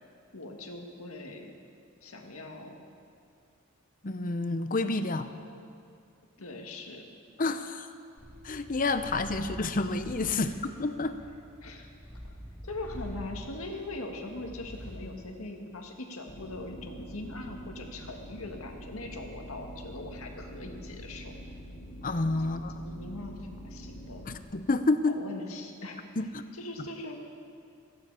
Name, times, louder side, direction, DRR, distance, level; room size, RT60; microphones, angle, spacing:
voice 1, 0.3-1.5 2.0-2.8 6.4-7.1 10.3-10.5 11.6-11.9 12.6-21.4 22.5-24.3 25.1-26.1 26.5-27.2, left 2 dB, 80° left, 2 dB, 1.9 m, -41 dB
voice 2, 4.0-5.3 7.4-7.9 8.4-10.5 10.8-11.2 22.0-22.7 24.3-25.2 26.2-26.4, left 3 dB, 40° left, 10 dB, 0.7 m, -29 dB
Purr, 8.2-15.1, equal, 10° right, 3.5 m, -45 dB
sound 1, 16.3-24.4, equal, 60° left, 2.3 m, -45 dB
17.0 x 15.0 x 4.9 m, 2.4 s
head